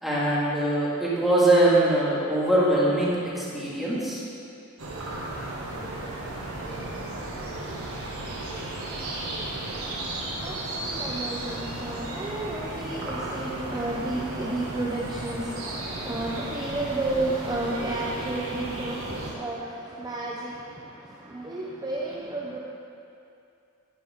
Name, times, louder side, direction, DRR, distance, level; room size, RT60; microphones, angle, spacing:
voice 1, 0.0-4.2 9.8-9.9, right 1 dB, ahead, -8 dB, 2.1 m, -22 dB
sound 1, 4.8-19.3, right 2 dB, 75° right, 1.8 m, -34 dB
voice 2, 9.5-22.6, right 2 dB, 20° right, -4 dB, 0.7 m, -32 dB
11.0 x 10.0 x 3.7 m, 2.6 s
head